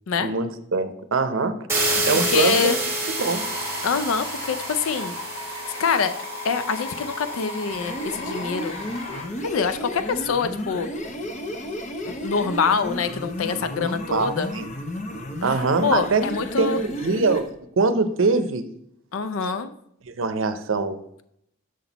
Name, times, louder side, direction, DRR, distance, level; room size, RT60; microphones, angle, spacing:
voice 1, 0.2-1.6 2.1-2.7 3.1-3.4 13.8-14.7 15.4-16.2 16.6-17.5 17.8-18.6 20.1-21.0, right 3 dB, 70° right, 11 dB, 0.6 m, -23 dB
sound 1, 1.7-8.5, right 1 dB, 15° right, 1.4 m, -29 dB
voice 2, 1.9-2.8 3.8-5.1 5.8-6.2 6.4-8.7 9.4-10.9 12.2-14.5 15.5-15.6 15.8-16.8 19.1-19.7, left 5 dB, 85° left, 11 dB, 0.5 m, -25 dB
sound 2, 3.2-9.2, left 2 dB, 65° left, 1.4 m, -36 dB
sound 3, 7.7-17.5, equal, 35° left, 0.8 m, -33 dB
6.5 x 6.0 x 4.0 m, 0.73 s
head